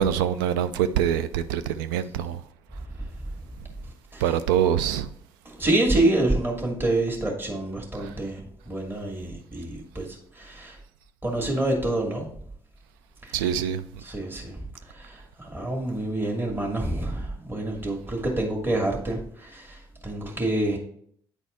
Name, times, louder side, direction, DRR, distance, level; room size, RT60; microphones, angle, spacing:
voice 1, 0.0-2.4 4.2-5.1 13.3-13.8, right 9 dB, 75° right, 0.4 m, -24 dB
voice 2, 5.4-10.1 10.3-10.8 11.2-12.2 13.2-13.5 14.0-14.6 14.9-19.8 20.0-20.8, right 2 dB, 20° right, 1.7 m, -27 dB
9.0 x 4.1 x 3.4 m
figure-of-eight pair, 45°, 12 cm